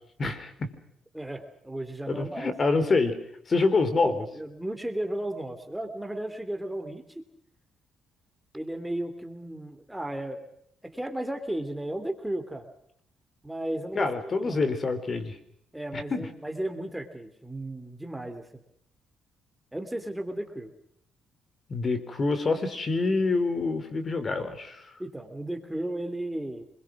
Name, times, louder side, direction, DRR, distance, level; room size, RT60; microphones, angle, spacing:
voice 1, 0.2-0.7 2.1-3.2 3.5-4.1 14.0-15.4 16.1-16.2 21.7-24.8, left 3 dB, 40° left, 11 dB, 4.1 m, -26 dB
voice 2, 1.1-2.5 4.0-7.2 8.5-10.4 10.8-12.7 13.4-14.6 15.7-18.6 19.7-20.7 25.0-26.6, right 1 dB, 5° right, 6 dB, 3.1 m, -34 dB
27.0 x 22.5 x 6.2 m, 0.71 s
cardioid pair, 90°, 0 cm